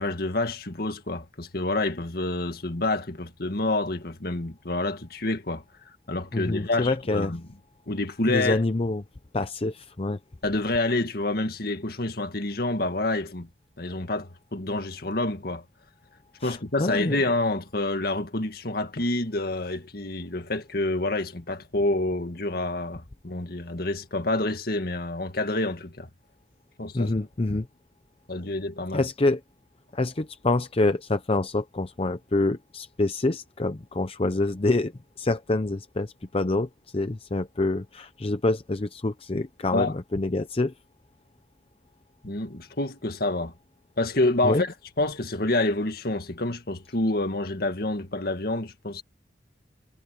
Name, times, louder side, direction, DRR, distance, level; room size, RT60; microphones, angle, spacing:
voice 1, 0.0-5.6 6.1-7.4 7.9-8.6 10.4-13.5 13.8-15.6 16.4-26.1 26.8-27.1 28.3-29.0 39.7-39.9 42.2-43.5 44.0-49.0, left 2 dB, 55° left, 2.0 m, -28 dB
voice 2, 6.3-7.3 8.3-9.0 9.3-10.2 16.4-17.2 26.9-27.7 28.9-29.4 29.9-34.9 35.2-40.7 44.4-44.6, left 2 dB, 35° left, 0.7 m, -26 dB
head